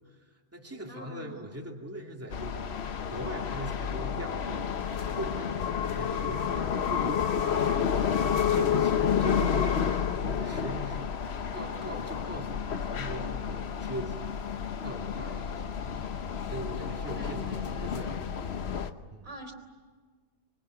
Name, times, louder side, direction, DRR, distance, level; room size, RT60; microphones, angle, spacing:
voice 1, 0.1-8.2 8.5-16.2 16.4-18.3 19.1-19.3, right 1 dB, 10° right, 1 dB, 2.6 m, -41 dB
voice 2, 0.8-1.7 17.0-18.0 19.2-19.5, right 1 dB, 50° right, 3 dB, 4.3 m, -44 dB
sound 1, 2.3-18.9, left 7 dB, 45° left, 1.0 m, -30 dB
25.5 x 23.0 x 9.4 m, 1.5 s
omnidirectional pair, 1.8 m